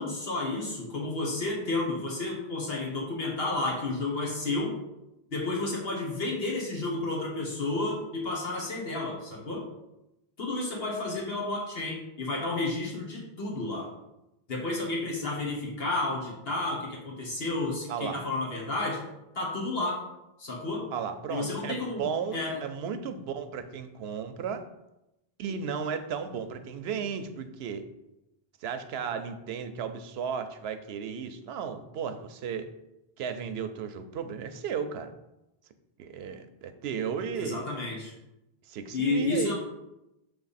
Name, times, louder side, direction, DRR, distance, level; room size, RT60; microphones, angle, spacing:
voice 1, 0.0-4.7 5.3-9.6 10.4-13.9 14.5-19.0 19.3-20.0 20.4-20.9 21.3-22.6 37.3-38.1 38.9-39.5, left 2 dB, 70° left, -2 dB, 1.4 m, -31 dB
voice 2, 17.9-18.2 20.9-24.7 25.4-27.8 28.6-32.7 33.2-35.1 36.0-37.7 38.7-39.5, right 6 dB, 90° right, 9 dB, 0.8 m, -34 dB
6.7 x 3.4 x 4.1 m, 0.91 s
omnidirectional pair, 1.0 m